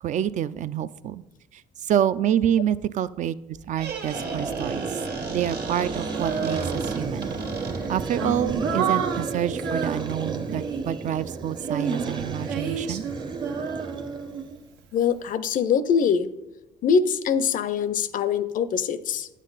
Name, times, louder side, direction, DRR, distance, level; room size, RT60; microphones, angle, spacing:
voice 1, 0.0-1.2 1.5-5.0 5.3-7.3 7.9-13.0, right 10 dB, 45° right, 15 dB, 0.4 m, -27 dB
Squeak, 3.5-8.2, right 4 dB, 65° right, 1.7 m, -35 dB
sound 1, 4.1-14.6, right 4 dB, 25° right, 0.7 m, -33 dB
Female singing, 6.1-7.2 7.8-11.0 11.6-14.8, right 6 dB, 85° right, 1.0 m, -30 dB
voice 2, 14.9-16.3 16.8-19.3, left 6 dB, 55° left, 15 dB, 0.5 m, -23 dB
9.1 x 7.4 x 3.9 m, 1.0 s
cardioid pair, 110°, 17 cm